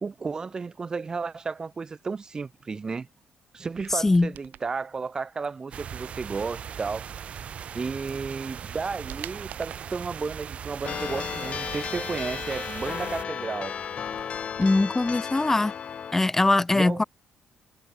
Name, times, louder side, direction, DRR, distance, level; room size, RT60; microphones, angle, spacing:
voice 1, 0.0-3.1 3.5-7.5 7.7-13.7 16.7-17.1, right 4 dB, 25° right, 2.3 m, -33 dB
sound 1, 3.7-4.7 7.7-7.8 8.3-10.0 10.6-12.0 12.4-15.1 15.4-15.5, right 12 dB, 75° right, 3.3 m, -48 dB
voice 2, 3.9-4.3 14.6-15.7 16.1-17.0, left 2 dB, 15° left, 0.4 m, -21 dB
sound 2, 5.7-13.2, right 8 dB, 45° right, 0.9 m, -39 dB
sound 3, 10.8-16.1, left 7 dB, 40° left, 2.5 m, -34 dB
cardioid pair, 155°, 3 cm